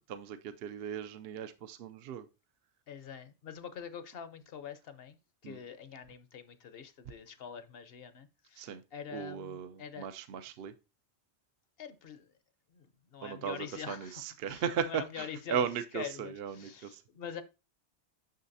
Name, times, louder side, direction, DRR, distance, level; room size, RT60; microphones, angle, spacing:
voice 1, 0.1-2.3 5.4-5.6 8.6-8.8 9.1-10.7 13.2-17.0, right 8 dB, 65° right, 0.7 m, -37 dB
voice 2, 2.9-5.2 5.4-10.1 11.8-12.2 12.7-12.9 13.1-14.2 14.5-15.6 15.9-17.4, left 8 dB, 60° left, 0.9 m, -45 dB
6.5 x 6.3 x 2.6 m
omnidirectional pair, 1.2 m